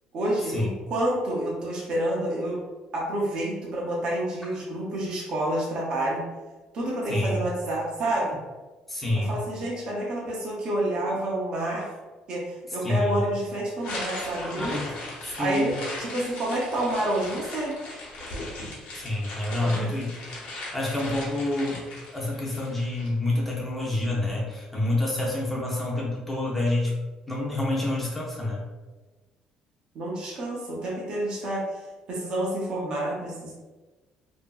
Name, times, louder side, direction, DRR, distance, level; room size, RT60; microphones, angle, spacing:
voice 1, 0.1-2.6 2.9-6.2 6.7-8.4 9.2-11.9 12.3-14.8 15.4-15.7 16.0-17.7 19.6-19.9 29.9-31.8 32.1-33.5, right 1 dB, 40° right, -4 dB, 0.5 m, -28 dB
voice 2, 7.1-7.4 8.9-9.3 12.8-13.2 14.6-14.8 15.2-15.8 18.9-20.1 20.7-21.9 22.1-26.9 27.3-28.6, left 1 dB, 5° left, -5 dB, 0.5 m, -27 dB
sound 1, 13.8-23.1, left 2 dB, 70° left, 0.9 m, -38 dB
2.7 x 2.5 x 2.3 m, 1.2 s
cardioid pair, 180°, 2 cm